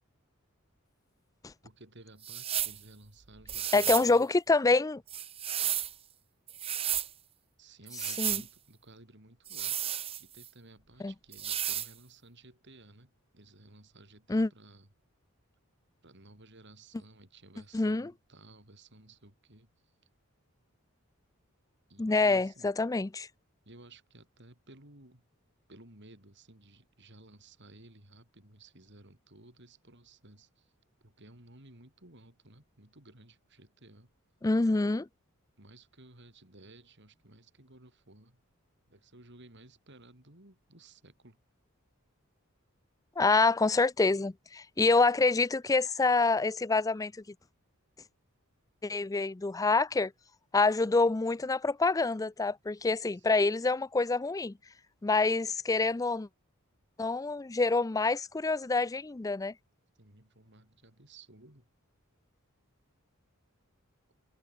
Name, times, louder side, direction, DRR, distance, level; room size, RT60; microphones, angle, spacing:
voice 1, 1.6-4.3 7.6-14.9 16.0-19.7 21.9-22.7 23.6-25.3 25.7-30.7 31.0-34.1 35.6-38.4 38.9-41.4 53.1-53.3 60.0-61.7, right 2 dB, 55° right, 5.5 m, -56 dB
sound 1, 2.2-2.8 3.5-4.1 5.1-5.9 6.5-7.1 7.9-8.5 9.5-10.5 11.3-11.9, right 11 dB, 25° right, 0.6 m, -33 dB
voice 2, 3.7-5.0 8.2-8.4 11.0-11.1 14.3-14.5 17.7-18.1 22.0-23.3 34.4-35.1 43.2-47.1 48.8-50.1 50.5-54.5 55.0-56.3 57.0-59.5, left 3 dB, 15° left, 0.4 m, -26 dB
head